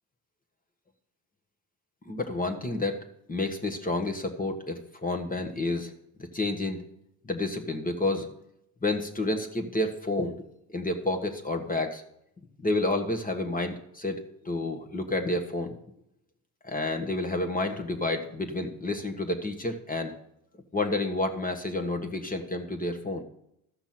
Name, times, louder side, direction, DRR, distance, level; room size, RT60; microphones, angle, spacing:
voice 1, 2.0-3.0 3.3-5.9 6.2-6.8 7.3-8.3 8.8-10.4 10.7-12.0 12.6-15.7 16.6-20.1 20.7-23.2, left 2 dB, 20° left, 4 dB, 1.5 m, -30 dB
13.5 x 5.9 x 5.9 m, 0.77 s
supercardioid pair, 85°, 46 cm